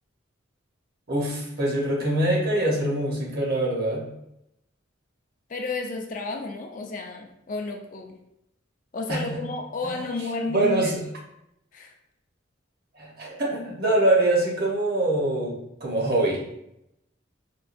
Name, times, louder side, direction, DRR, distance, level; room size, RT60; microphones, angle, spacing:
voice 1, 1.1-4.1 9.1-9.4 9.8-9.9 10.5-11.0 13.0-16.4, right 1 dB, 50° right, -2 dB, 0.9 m, -24 dB
voice 2, 5.5-8.2 8.9-10.9 11.7-11.9, left 2 dB, 40° left, 2 dB, 0.4 m, -32 dB
4.4 x 2.3 x 2.5 m, 0.82 s
head